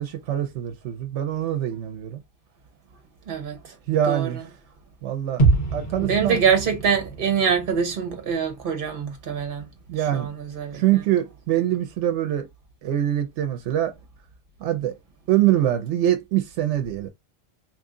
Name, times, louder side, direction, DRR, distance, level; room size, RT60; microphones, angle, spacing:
voice 1, 0.0-2.2 3.9-4.4 5.0-5.4 5.7-6.4 9.9-10.3 10.7-12.5 12.8-13.9 14.6-14.9 15.3-17.1, right 12 dB, 85° right, 0.9 m, -24 dB
voice 2, 3.3-3.7 4.1-4.3 6.0-9.6 10.1-11.0, right 6 dB, 55° right, 1.1 m, -24 dB
sound 1, 5.4-9.3 9.6-9.7, right 3 dB, 45° left, 1.4 m, -26 dB
3.0 x 2.7 x 3.6 m
omnidirectional pair, 1.2 m